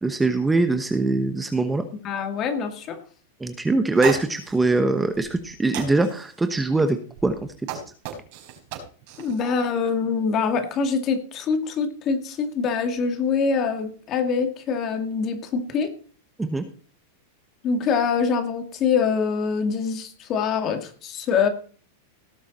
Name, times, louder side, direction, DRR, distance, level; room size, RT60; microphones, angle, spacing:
voice 1, 0.0-1.8 3.4-7.0 7.2-7.3 16.4-16.6, right 3 dB, 10° right, 8 dB, 1.1 m, -22 dB
voice 2, 2.0-3.0 9.2-15.9 17.6-21.5, left 5 dB, 35° left, 7 dB, 2.2 m, -24 dB
sound 1, 4.0-4.6 5.1-5.5 5.7-6.3 7.2-9.5, right 9 dB, 55° right, 5.0 m, -34 dB
18.0 x 7.2 x 4.2 m, 0.41 s
supercardioid pair, 135°, 0 cm